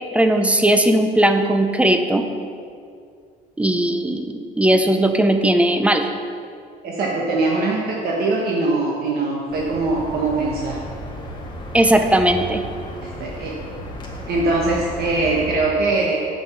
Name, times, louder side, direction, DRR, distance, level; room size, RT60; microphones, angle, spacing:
voice 1, 0.1-2.3 3.6-6.1 11.7-12.7, right 1 dB, 5° right, 7 dB, 0.6 m, -18 dB
voice 2, 6.8-10.8 13.0-13.6 14.3-16.2, right 3 dB, 65° right, -2 dB, 1.2 m, -22 dB
sound 1, 9.5-15.5, equal, 25° left, 1.7 m, -34 dB
7.9 x 6.9 x 4.8 m, 2.3 s
cardioid pair, 110°, 17 cm